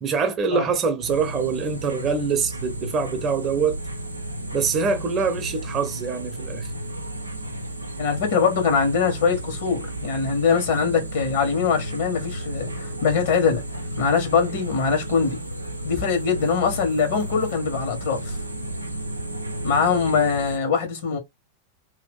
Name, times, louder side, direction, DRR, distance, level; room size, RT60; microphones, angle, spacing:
voice 1, 0.0-3.8 4.5-6.7, right 5 dB, 30° right, 0.7 m, -24 dB
sound 1, 1.0-20.6, right 1 dB, 85° right, 0.5 m, -33 dB
voice 2, 8.0-13.6 14.0-15.4 15.8-18.3 19.6-21.2, left 5 dB, 55° left, 1.4 m, -22 dB
2.8 x 2.5 x 3.6 m
figure-of-eight pair, 90°, 0 cm